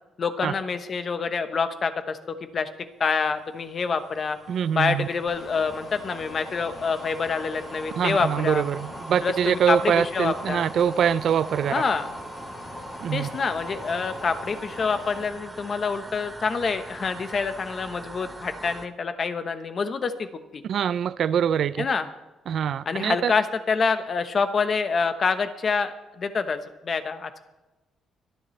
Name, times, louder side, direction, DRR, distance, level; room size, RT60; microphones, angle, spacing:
voice 1, 0.2-2.7 3.0-4.4 4.7-8.6 9.2-10.7 11.7-12.1 13.1-20.6 21.8-22.1 22.9-27.4, left 5 dB, 35° left, 1.0 m, -27 dB
sound 1, 3.3-18.9, right 2 dB, 15° right, 0.9 m, -41 dB
voice 2, 4.5-5.1 8.0-11.7 13.0-13.3 20.7-21.9 22.5-23.3, right 8 dB, 55° right, 0.4 m, -24 dB
sound 2, 5.3-15.3, left 4 dB, 55° left, 1.7 m, -43 dB
25.0 x 10.5 x 3.2 m
cardioid pair, 155°, 0 cm